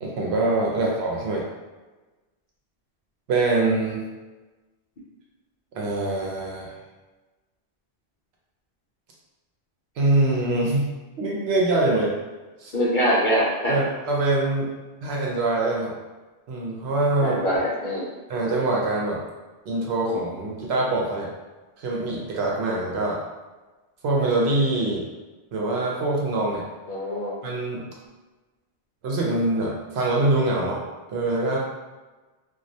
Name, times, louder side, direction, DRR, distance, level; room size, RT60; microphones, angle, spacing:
voice 1, 0.0-1.4 3.3-4.0 5.7-6.7 10.0-10.9 11.2-12.1 12.6-12.7 13.7-14.7 15.0-15.9 16.5-17.4 18.3-19.2 19.7-21.3 21.8-23.2 24.0-25.1 25.5-26.6 27.4-27.9 29.0-30.8 31.1-31.6, right 2 dB, 70° right, -3 dB, 0.8 m, -24 dB
voice 2, 12.7-13.8 17.2-18.2 26.9-27.3, equal, 55° left, -7 dB, 0.7 m, -23 dB
2.3 x 2.1 x 2.6 m, 1.2 s
omnidirectional pair, 1.2 m